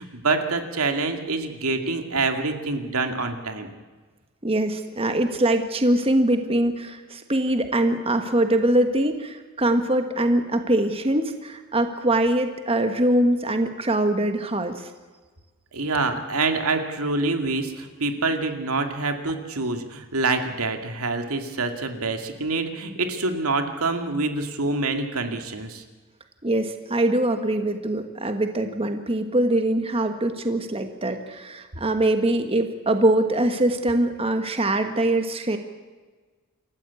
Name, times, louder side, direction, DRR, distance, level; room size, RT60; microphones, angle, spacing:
voice 1, 0.0-3.7 15.7-25.8, right 3 dB, 80° right, 6 dB, 2.3 m, -26 dB
voice 2, 4.4-14.9 26.4-35.6, right 1 dB, 25° right, 7 dB, 1.4 m, -23 dB
28.0 x 14.5 x 8.4 m, 1.4 s
head